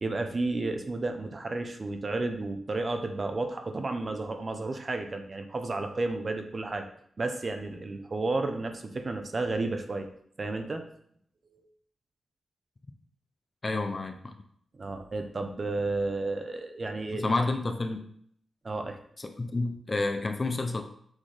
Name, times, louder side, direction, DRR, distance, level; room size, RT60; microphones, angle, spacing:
voice 1, 0.0-6.8 7.2-10.1 10.4-10.9 14.7-17.2 18.6-19.0, right 2 dB, 30° right, 6 dB, 0.6 m, -32 dB
voice 2, 13.6-14.4 17.1-18.1 19.2-20.8, left 2 dB, 25° left, 6 dB, 0.5 m, -30 dB
6.2 x 3.8 x 4.9 m, 0.66 s
wide cardioid pair, 175°, 0 cm